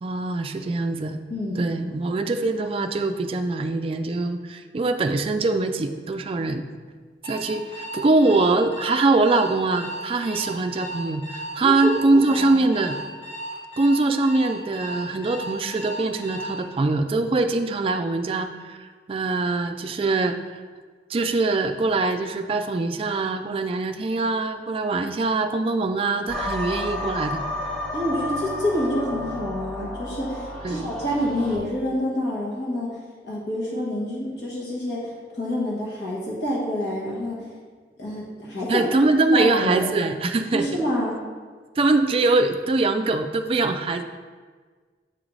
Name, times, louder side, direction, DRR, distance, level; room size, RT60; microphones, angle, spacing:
voice 1, 0.0-1.2 1.6-6.6 7.2-13.0 13.8-20.4 21.1-27.4 30.6-30.9 38.7-40.7 41.8-44.0, right 3 dB, 30° right, 7 dB, 0.3 m, -23 dB
voice 2, 1.3-1.7 11.6-12.6 27.9-32.9 33.2-37.4 38.0-38.8 39.3-39.9 40.5-41.1, left 1 dB, 75° left, -5 dB, 1.5 m, -27 dB
Alarm, 7.2-16.6, right 1 dB, 35° left, 1.6 m, -35 dB
sound 1, 26.3-31.6, left 1 dB, 5° left, 0.8 m, -31 dB
7.8 x 3.8 x 3.2 m, 1.5 s
head